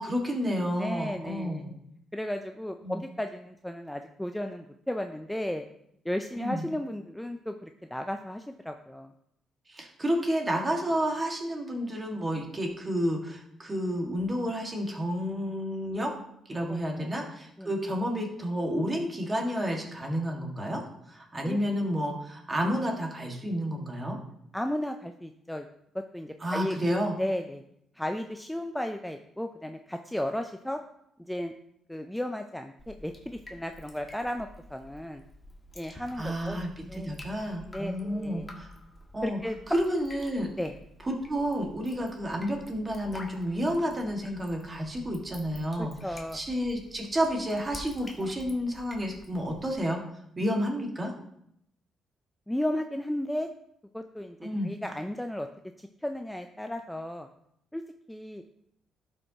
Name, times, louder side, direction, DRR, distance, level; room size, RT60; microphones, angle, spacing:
voice 1, 0.0-1.7 2.8-3.0 6.3-6.6 9.7-16.1 16.5-24.2 26.4-27.1 35.9-38.7 39.1-39.4 39.7-40.5 41.1-50.0 50.4-51.1 54.4-54.7, equal, 25° right, 1 dB, 1.7 m, -30 dB
voice 2, 0.8-1.6 2.1-5.6 6.0-9.1 16.7-17.1 17.6-17.7 21.4-21.6 24.5-25.7 25.9-26.8 27.2-27.6 28.0-30.8 31.2-31.5 31.9-35.2 35.8-36.6 36.9-37.2 37.7-38.5 39.2-39.6 40.6-40.7 45.8-46.4 52.5-53.5 53.9-55.5 55.8-57.3 57.7-57.8 58.1-58.4, left 1 dB, 5° left, 6 dB, 0.4 m, -34 dB
Drip, 32.8-49.8, left 1 dB, 25° left, 1.5 m, -49 dB
12.0 x 5.5 x 2.9 m, 0.75 s
cardioid pair, 90°, 0 cm